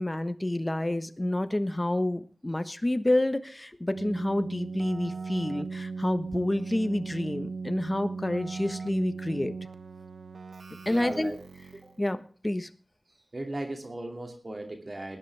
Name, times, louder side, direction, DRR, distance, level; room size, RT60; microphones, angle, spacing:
voice 1, 0.0-9.5 10.8-11.3 12.0-12.7, left 1 dB, 25° left, 11 dB, 1.2 m, -29 dB
Keyboard (musical), 3.9-12.0, right 4 dB, 85° right, 1.0 m, -38 dB
voice 2, 10.9-11.4 11.7-11.9 13.3-15.2, right 1 dB, 45° right, 4 dB, 2.5 m, -37 dB
19.5 x 10.5 x 3.5 m, 0.41 s
wide cardioid pair, 55°, 0 cm